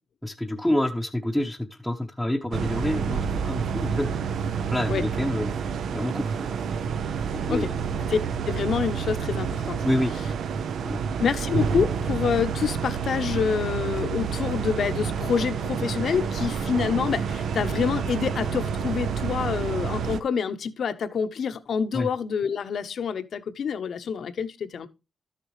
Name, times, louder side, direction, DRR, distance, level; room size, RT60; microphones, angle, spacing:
voice 1, 0.2-4.1 4.7-5.5 5.9-6.6 7.3-7.7 9.8-10.1 10.8-11.0 21.9-22.1, left 1 dB, 5° left, 0.8 m, -28 dB
sound 1, 2.5-20.2, right 6 dB, 80° right, 0.6 m, -29 dB
voice 2, 8.5-9.8 11.2-24.9, left 6 dB, 65° left, 0.9 m, -27 dB
13.0 x 6.7 x 3.2 m
wide cardioid pair, 140°, 0 cm